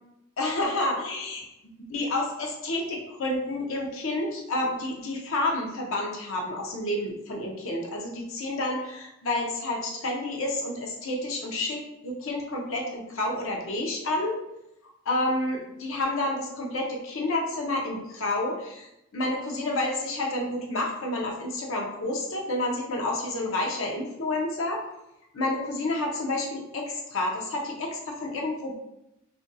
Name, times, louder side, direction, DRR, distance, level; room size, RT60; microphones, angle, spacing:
voice 1, 0.4-1.4 1.9-14.4 15.1-24.8 25.3-28.7, left 2 dB, 70° left, 0 dB, 0.6 m, -29 dB
2.5 x 2.3 x 3.9 m, 0.85 s
head